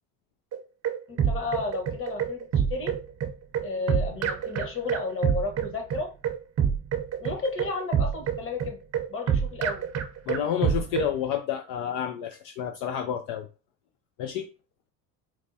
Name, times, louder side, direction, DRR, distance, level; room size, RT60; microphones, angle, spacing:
sound 1, 0.5-11.1, right 8 dB, 40° right, 0.6 m, -27 dB
voice 1, 1.1-2.9 3.6-6.1 7.2-8.8 9.1-9.9, left 3 dB, 30° left, 3 dB, 1.2 m, -32 dB
voice 2, 10.3-13.5 14.2-14.5, left 9 dB, 65° left, 6 dB, 0.5 m, -29 dB
4.5 x 2.2 x 2.7 m, 0.32 s
hypercardioid pair, 75°, 41 cm